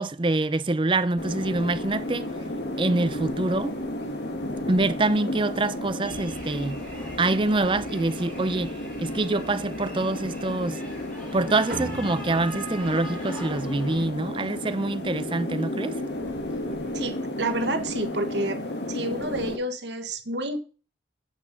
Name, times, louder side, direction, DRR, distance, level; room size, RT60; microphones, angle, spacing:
voice 1, 0.0-2.3 2.8-3.7 4.7-6.8 7.2-8.7 9.0-10.8 11.3-16.0, right 2 dB, 25° right, 0.5 m, -25 dB
sound 1, 1.2-19.6, left 1 dB, 65° left, 1.8 m, -33 dB
sound 2, 6.0-14.1, equal, 5° left, 3.1 m, -42 dB
sound 3, 11.7-16.4, right 2 dB, 50° right, 1.4 m, -42 dB
voice 2, 16.9-18.6 18.9-20.6, right 2 dB, 70° right, 1.3 m, -29 dB
8.2 x 5.9 x 7.5 m
head